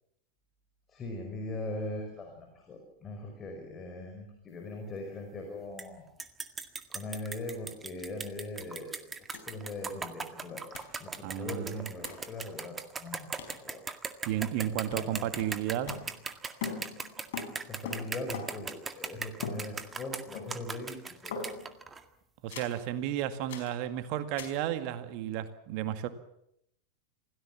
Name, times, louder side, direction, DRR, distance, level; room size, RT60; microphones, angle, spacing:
voice 1, 0.9-6.1 6.9-9.2 9.4-10.6 11.0-13.8 14.9-15.3 17.7-21.4, left 2 dB, 25° left, 5.3 m, -40 dB
sound 1, 5.8-5.9 6.2-22.0, right 5 dB, 15° right, 1.9 m, -39 dB
sound 2, 9.3-9.4 9.7-9.8 10.7-11.0 12.0-12.3 13.4-13.6 14.3-14.6 14.9-16.4 16.6-18.8 19.4-20.1 20.4-20.8 21.3-21.8 22.5-22.8 23.5-23.8 24.4-24.6, left 5 dB, 55° left, 4.8 m, -42 dB
voice 2, 11.2-11.9 14.3-16.0 22.4-26.1, right 11 dB, 45° right, 1.9 m, -33 dB
27.5 x 17.5 x 7.4 m
figure-of-eight pair, 90°, 0 cm